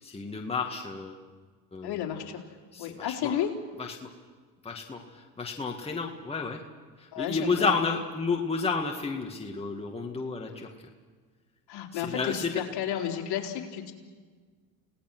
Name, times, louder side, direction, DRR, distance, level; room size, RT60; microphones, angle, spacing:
voice 1, 0.0-1.2 1.7-2.0 2.7-3.4 3.8-4.1 4.6-6.6 7.0-10.7 11.9-12.6, left 4 dB, 10° left, 1 dB, 2.0 m, -31 dB
voice 2, 1.8-2.4 2.8-3.5 7.1-7.7 11.7-13.9, left 10 dB, 50° left, 1 dB, 3.6 m, -32 dB
29.5 x 18.5 x 6.2 m, 1.5 s
supercardioid pair, 95°, 50 cm